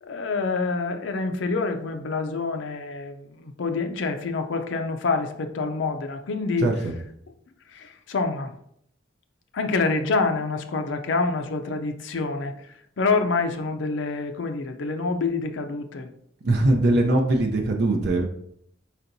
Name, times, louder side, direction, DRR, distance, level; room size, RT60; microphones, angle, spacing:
voice 1, 0.0-6.7 7.7-8.5 9.5-12.5 13.0-16.1, left 4 dB, 70° left, 6 dB, 0.5 m, -27 dB
voice 2, 6.6-6.9 16.4-18.2, right 2 dB, 60° right, 1 dB, 0.6 m, -21 dB
4.4 x 4.2 x 2.6 m, 0.69 s
head